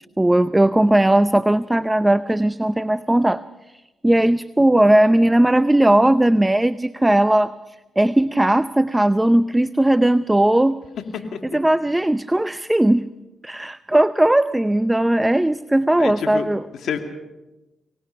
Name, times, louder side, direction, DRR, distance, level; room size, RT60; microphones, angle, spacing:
voice 1, 0.2-10.8 11.5-13.1 13.4-16.6, right 1 dB, 15° right, 14 dB, 0.6 m, -18 dB
voice 2, 16.0-16.5 16.8-17.0, left 7 dB, 75° left, 5 dB, 2.3 m, -27 dB
24.5 x 18.5 x 5.7 m, 1.0 s
cardioid pair, 65°, 0 cm